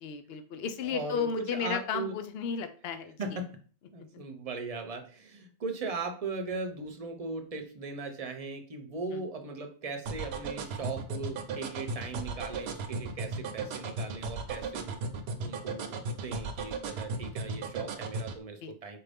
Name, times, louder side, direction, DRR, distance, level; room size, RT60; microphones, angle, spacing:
voice 1, 0.0-3.2 9.1-9.2 18.6-18.7, left 6 dB, 75° left, 8 dB, 0.8 m, -34 dB
voice 2, 0.8-2.2 3.2-3.6 3.9-15.0 15.4-19.0, right 3 dB, 40° right, 4 dB, 0.7 m, -38 dB
sound 1, 10.1-18.4, right 4 dB, 80° right, 0.8 m, -35 dB
4.2 x 2.6 x 3.4 m, 0.41 s
omnidirectional pair, 1.1 m